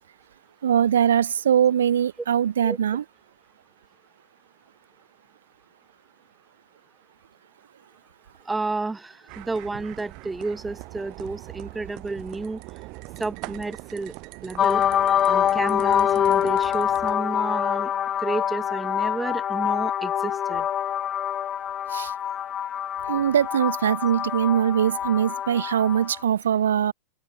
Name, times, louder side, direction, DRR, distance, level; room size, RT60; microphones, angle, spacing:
voice 1, 0.6-3.0 21.9-22.1 23.1-26.9, right 9 dB, 65° right, 0.5 m, -22 dB
voice 2, 8.5-12.6 13.2-14.1 14.4-14.8 15.3-17.9 18.2-20.7, right 3 dB, 10° right, 2.8 m, -31 dB
sound 1, 9.3-17.1, right 26 dB, 40° right, 2.3 m, -41 dB
sound 2, 14.6-26.2, left 10 dB, 25° left, 0.3 m, -25 dB
open air
figure-of-eight pair, 90°, 0 cm